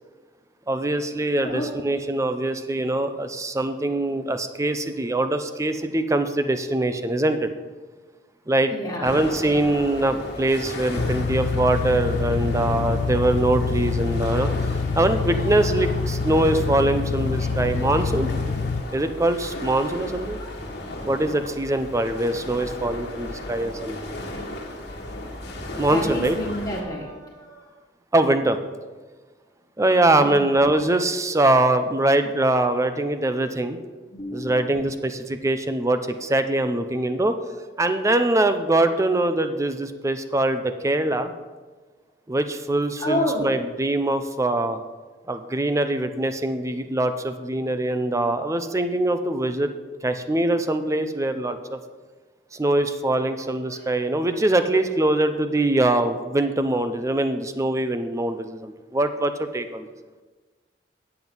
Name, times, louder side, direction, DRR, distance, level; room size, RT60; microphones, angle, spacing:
voice 1, 0.7-7.5 8.5-8.7 9.0-14.5 15.0-18.3 18.9-20.4 21.0-24.0 25.8-26.4 28.1-28.6 29.8-33.8 34.3-37.3 37.8-41.3 42.3-44.8 45.3-49.7 50.0-51.8 52.5-59.9, right 2 dB, 15° right, 9 dB, 0.6 m, -23 dB
voice 2, 8.7-9.1 25.9-27.6 30.2-30.4 34.1-34.7 43.0-43.5, left 1 dB, 25° left, -6 dB, 1.6 m, -29 dB
sound 1, 9.0-26.8, left 1 dB, 65° left, 1.6 m, -35 dB
sound 2, 11.0-18.8, left 4 dB, 45° left, 0.4 m, -26 dB
9.0 x 7.8 x 5.5 m, 1.3 s
head